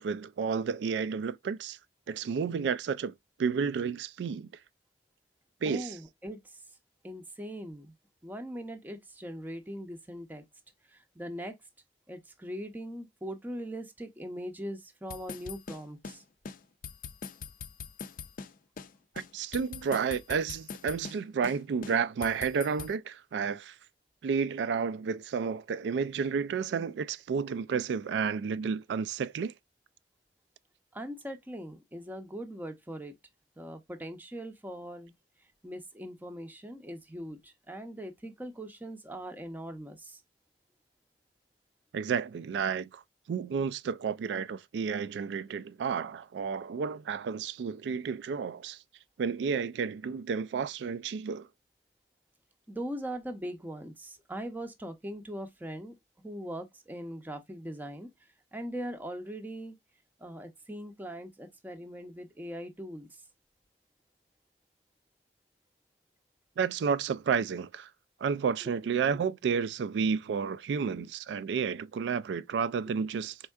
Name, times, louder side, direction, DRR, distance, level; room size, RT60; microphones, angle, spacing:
voice 1, 0.0-1.8 2.1-3.1 3.4-4.5 5.6-5.9 19.3-23.8 24.2-29.5 41.9-43.0 43.3-48.8 49.2-51.5 66.6-67.9 68.2-73.4, right 6 dB, 75° right, 0.3 m, -31 dB
voice 2, 5.6-6.6 7.0-7.9 8.2-10.4 10.8-11.6 12.1-16.2 30.9-33.1 33.6-35.1 35.6-40.2 52.7-58.1 58.5-59.8 60.2-63.1 68.6-68.7 69.1-69.2, equal, 10° right, 0.6 m, -41 dB
sound 1, 15.1-16.2 16.4-16.6 16.8-18.5 18.8-18.9 19.2-21.2 21.4-21.6 21.8-22.9, left 5 dB, 50° left, 0.4 m, -42 dB
4.4 x 3.6 x 2.3 m
head